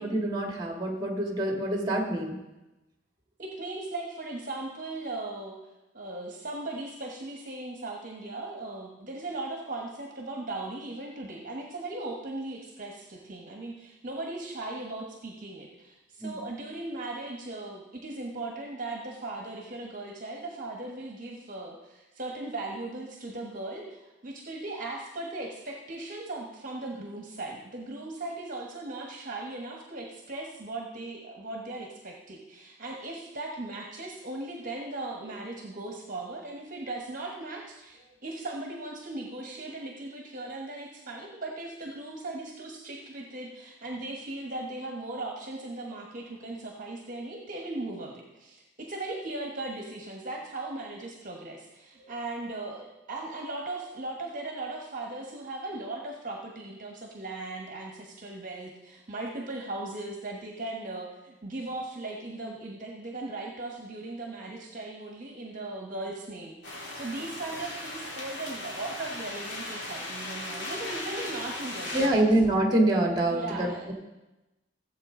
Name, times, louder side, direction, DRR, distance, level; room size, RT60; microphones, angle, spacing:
voice 1, 0.0-2.4 16.2-16.4 52.0-52.1 71.9-73.9, right 1 dB, 25° right, 1 dB, 1.8 m, -26 dB
voice 2, 3.4-5.6 5.9-72.3 73.3-73.9, right 2 dB, 45° right, 0 dB, 1.3 m, -38 dB
sound 1, 66.6-72.1, left 1 dB, 65° left, 2.6 m, -37 dB
15.5 x 7.7 x 3.8 m, 1.0 s
head